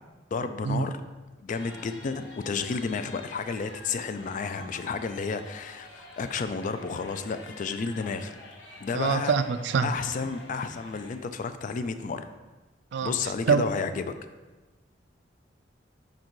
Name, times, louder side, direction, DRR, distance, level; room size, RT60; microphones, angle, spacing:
voice 1, 0.3-1.0 1.4-8.3 8.8-9.3 9.8-12.3 13.0-14.1, left 5 dB, 45° left, 10 dB, 0.3 m, -31 dB
sound 1, 1.5-11.1, left 2 dB, 80° left, 0.9 m, -48 dB
voice 2, 8.9-9.9 12.9-13.1 13.5-13.6, right 6 dB, 70° right, 11 dB, 0.3 m, -24 dB
5.2 x 4.0 x 4.6 m, 1.2 s
head